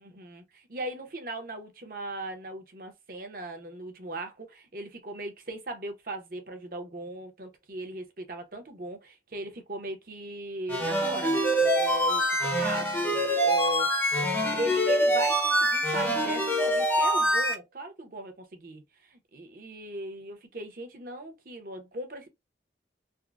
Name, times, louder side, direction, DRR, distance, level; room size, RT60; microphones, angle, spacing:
voice 1, 0.0-22.3, right 1 dB, 50° right, 0.8 m, -38 dB
sound 1, 10.7-17.5, equal, 10° left, 0.6 m, -25 dB
3.5 x 2.1 x 2.3 m
head